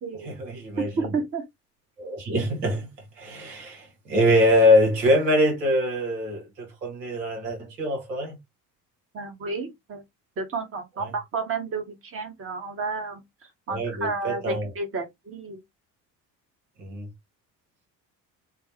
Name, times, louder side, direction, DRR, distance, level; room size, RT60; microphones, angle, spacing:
voice 1, 0.1-1.1 2.0-8.4 11.0-11.1 13.7-14.7 16.8-17.1, left 1 dB, 75° right, 1.4 m, -24 dB
voice 2, 0.8-1.4 9.1-10.0 10.4-13.2 13.7-15.6, right 4 dB, 25° right, 1.1 m, -31 dB
4.7 x 2.1 x 2.7 m
figure-of-eight pair, 55°, 49 cm